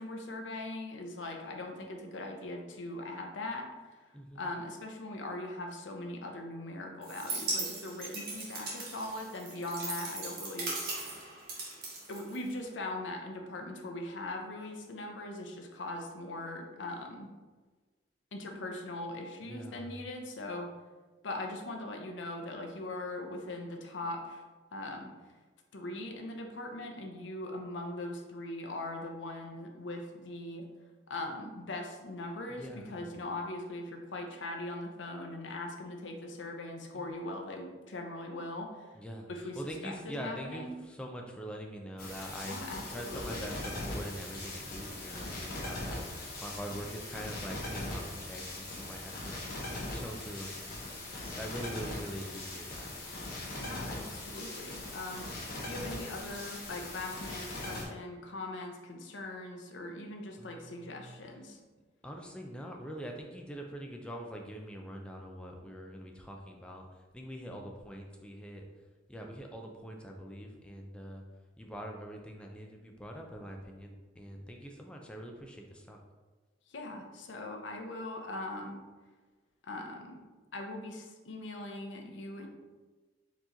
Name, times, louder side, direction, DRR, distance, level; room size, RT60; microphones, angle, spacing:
voice 1, 0.0-11.1 12.1-17.3 18.3-20.7 21.2-24.4 24.7-25.1 25.7-30.7 31.1-39.0 39.3-40.8 42.4-43.5 53.6-61.6 76.7-78.8 79.6-80.2 80.5-82.5, left 2 dB, 70° left, 2 dB, 0.7 m, -40 dB
voice 2, 4.1-4.5 19.5-20.0 32.5-33.0 36.9-37.3 39.0-50.9 51.2-52.9 53.5-54.1 60.4-61.2 62.0-68.6 69.1-71.2 71.6-76.0, equal, 5° left, 1 dB, 0.4 m, -44 dB
sound 1, 7.0-12.7, right 3 dB, 50° right, 1.1 m, -39 dB
sound 2, 42.0-57.8, left 2 dB, 50° left, 1.1 m, -40 dB
4.5 x 3.0 x 3.9 m, 1.3 s
head